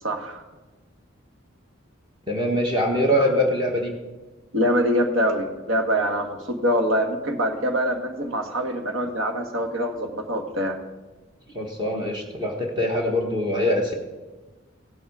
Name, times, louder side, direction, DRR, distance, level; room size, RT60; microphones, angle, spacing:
voice 1, 0.0-0.4 4.5-10.8, equal, 85° right, 4 dB, 1.5 m, -24 dB
voice 2, 2.3-4.0 11.5-13.9, left 1 dB, 25° right, 0 dB, 1.3 m, -23 dB
16.5 x 8.4 x 4.9 m, 1.2 s
head